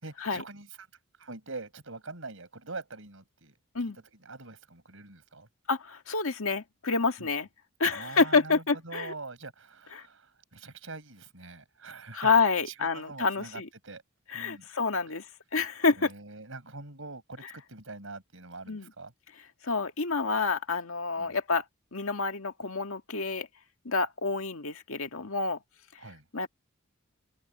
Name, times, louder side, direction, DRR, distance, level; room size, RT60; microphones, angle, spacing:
voice 1, 0.0-0.9 1.2-3.6 4.2-5.5 7.2-7.3 7.9-12.3 12.7-14.0 14.3-14.7 16.0-19.1 21.2-21.4 26.0-26.2, right 3 dB, 70° right, 5.9 m, -44 dB
voice 2, 5.7-7.5 7.8-9.1 9.9-10.0 12.1-13.7 14.3-15.3 15.5-16.1 18.7-18.9 19.6-21.6 21.9-23.5 23.9-25.6 26.3-26.5, left 4 dB, 80° left, 2.0 m, -28 dB
head